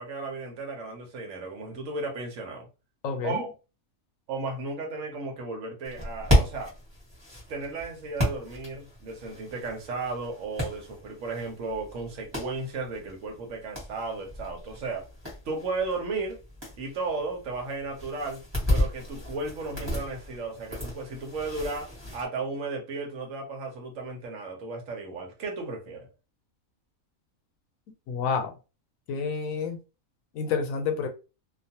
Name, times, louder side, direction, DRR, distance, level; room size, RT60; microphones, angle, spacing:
voice 1, 0.0-2.7 3.2-3.5 4.3-6.7 7.5-15.0 15.4-16.4 16.8-18.4 18.7-26.1, right 3 dB, 70° right, 1.2 m, -34 dB
voice 2, 3.0-3.4 28.1-28.5 29.1-29.8 30.3-31.1, left 5 dB, 75° left, 1.0 m, -29 dB
sound 1, 5.8-22.3, equal, 20° right, 1.1 m, -33 dB
2.5 x 2.4 x 2.7 m
omnidirectional pair, 1.4 m